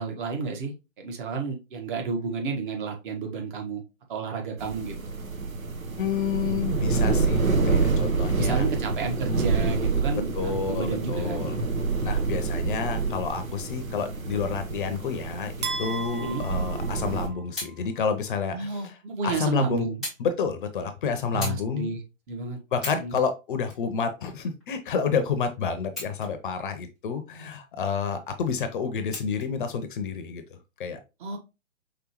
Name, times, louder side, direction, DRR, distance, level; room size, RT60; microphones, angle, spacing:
voice 1, 0.0-3.8 4.1-5.1 8.3-11.5 16.1-16.5 18.5-20.0 21.3-22.0 22.3-22.6 23.0-23.2 31.2-31.4, right 4 dB, 40° right, 2 dB, 1.4 m, -31 dB
sound 1, 4.6-17.3, right 4 dB, 90° right, 1.0 m, -27 dB
voice 2, 6.0-8.7 10.3-11.6 12.0-15.5 15.8-19.0 19.2-19.9 20.2-22.0 22.7-30.4 30.8-31.0, left 6 dB, 40° left, 8 dB, 0.7 m, -29 dB
sound 2, 15.6-17.8, right 4 dB, 55° right, 1.3 m, -35 dB
sound 3, 17.5-17.8 18.7-18.8 20.0-20.3 20.6-20.8 21.4-21.7 22.2-22.3 22.7-23.1 23.6-24.6 25.8-26.5 27.0-27.1 29.1-29.5 30.4-30.5, left 2 dB, ahead, 0.4 m, -37 dB
5.1 x 3.3 x 3.0 m, 0.27 s
figure-of-eight pair, 125°, 40 cm